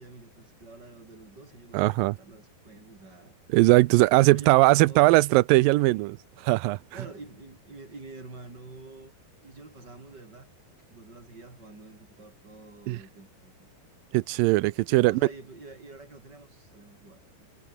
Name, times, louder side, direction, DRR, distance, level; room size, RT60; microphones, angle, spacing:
voice 1, 0.0-3.4 4.1-5.0 6.9-9.1 9.4-10.5 10.9-13.7 14.9-17.5, right 3 dB, 25° right, 6.2 m, -47 dB
voice 2, 1.7-2.2 3.5-6.8 12.9-13.0 14.1-15.2, right 20 dB, 85° right, 2.0 m, -20 dB
omnidirectional pair, 4.8 m